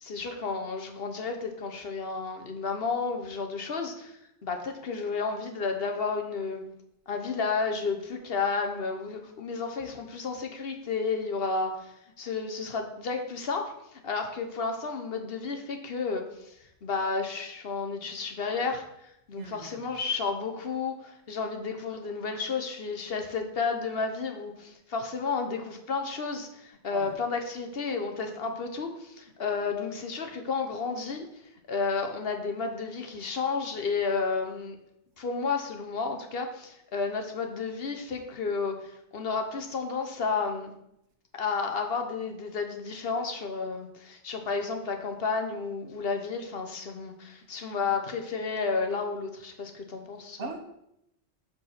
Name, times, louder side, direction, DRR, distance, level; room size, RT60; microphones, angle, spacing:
voice 1, 0.0-4.1 4.4-6.7 7.1-16.6 16.8-18.8 19.3-31.3 31.7-34.8 35.2-40.7 41.3-50.5, left 4 dB, 60° left, 1.1 m, -32 dB
voice 2, 19.3-19.9 26.9-27.2 50.4-50.6, right 3 dB, 85° right, 1.3 m, -40 dB
5.8 x 5.0 x 6.5 m
omnidirectional pair, 1.2 m